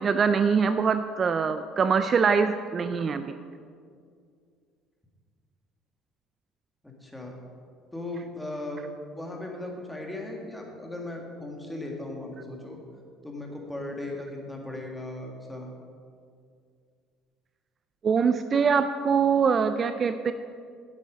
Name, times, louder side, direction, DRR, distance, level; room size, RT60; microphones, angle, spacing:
voice 1, 0.0-3.3 18.0-20.3, right 6 dB, 35° right, 10 dB, 0.3 m, -23 dB
voice 2, 6.8-7.4 7.9-8.9 9.1-12.8 13.2-15.7, left 2 dB, 5° left, 0 dB, 1.8 m, -37 dB
8.3 x 8.1 x 5.1 m, 2.2 s
supercardioid pair, 95°, 0 cm